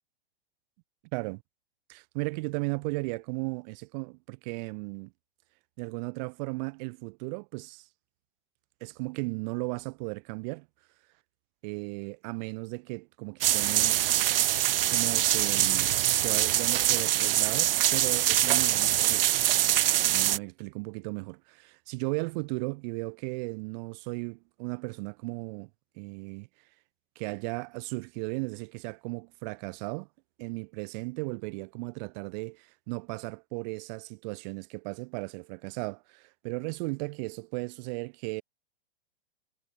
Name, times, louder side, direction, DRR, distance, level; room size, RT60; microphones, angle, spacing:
voice 1, 1.9-5.1 5.8-7.9 8.8-10.7 11.6-14.0 14.5-19.3 20.1-25.7 26.0-26.5 27.2-30.1 30.4-38.4, right 30 dB, 45° right, 2.5 m, -36 dB
sound 1, 13.4-20.4, right 13 dB, 65° right, 0.7 m, -24 dB
hypercardioid pair, 110°, 31 cm